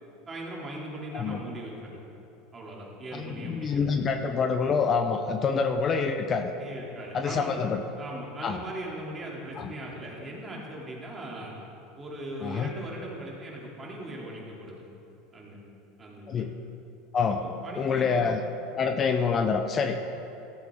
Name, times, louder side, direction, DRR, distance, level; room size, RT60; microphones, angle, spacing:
voice 1, 0.3-2.0 2.5-3.9 6.6-7.6 8.0-11.5 12.0-14.9 15.3-15.6 16.0-16.4 17.3-18.3 18.8-18.9, right 1 dB, 25° right, -3 dB, 2.7 m, -39 dB
voice 2, 3.1-6.5 7.1-7.8 8.4-8.6 9.6-9.7 12.4-12.7 16.3-16.5 17.1-17.4 17.8-18.4 18.8-20.0, left 5 dB, 35° left, 7 dB, 0.7 m, -26 dB
15.0 x 8.0 x 3.6 m, 2.8 s
hypercardioid pair, 100°, 0 cm